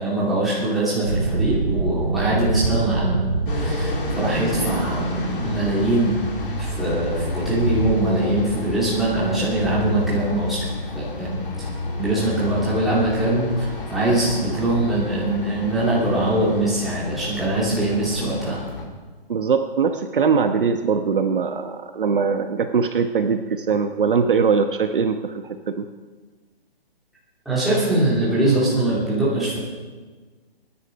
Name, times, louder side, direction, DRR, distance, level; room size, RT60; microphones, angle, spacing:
voice 1, 0.0-3.2 3.5-6.2 6.6-10.6 10.9-11.7 12.0-18.6 27.4-29.6, right 1 dB, ahead, -10 dB, 3.1 m, -22 dB
sound 1, 1.0-8.0, right 4 dB, 25° right, 0.6 m, -27 dB
sound 2, 3.5-18.8, left 3 dB, 60° left, 3.9 m, -30 dB
voice 2, 19.3-25.8, right 5 dB, 55° right, 7 dB, 1.1 m, -21 dB
22.5 x 10.0 x 5.3 m, 1.4 s
hypercardioid pair, 175°, 31 cm